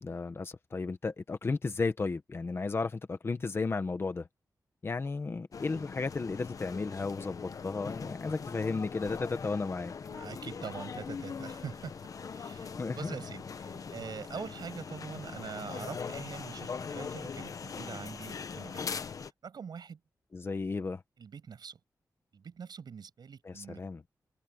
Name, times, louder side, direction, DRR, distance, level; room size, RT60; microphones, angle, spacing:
voice 1, 0.0-4.3 4.8-9.9 12.8-13.1 20.3-21.0 23.4-24.0, left 4 dB, 35° left, 1.4 m, -34 dB
sound 1, 5.5-19.3, left 5 dB, 55° left, 0.9 m, -41 dB
voice 2, 10.1-12.0 12.3-18.9 19.4-20.0 21.2-21.8 22.3-23.8, right 6 dB, 90° right, 7.3 m, -44 dB
open air
wide cardioid pair, 160°, 7 cm